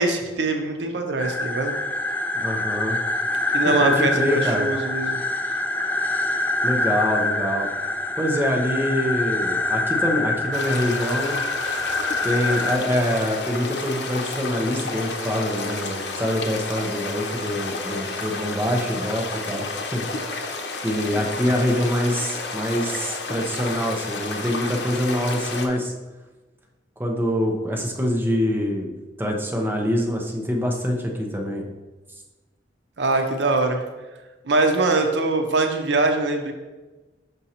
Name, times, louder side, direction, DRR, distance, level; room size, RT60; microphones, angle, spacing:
voice 1, 0.0-1.7 3.5-5.2 33.0-33.8 34.5-36.5, right 2 dB, 85° right, 5 dB, 0.7 m, -22 dB
sound 1, 1.2-12.8, left 2 dB, 10° left, 0.3 m, -25 dB
voice 2, 2.3-3.0 3.6-4.7 6.6-7.7 8.2-11.4 12.2-20.1 20.8-25.9 27.0-28.9 29.2-31.6, equal, 10° right, 0 dB, 0.8 m, -25 dB
sound 2, 10.5-25.7, left 3 dB, 80° left, 0.7 m, -31 dB
6.2 x 5.3 x 2.9 m, 1.2 s
head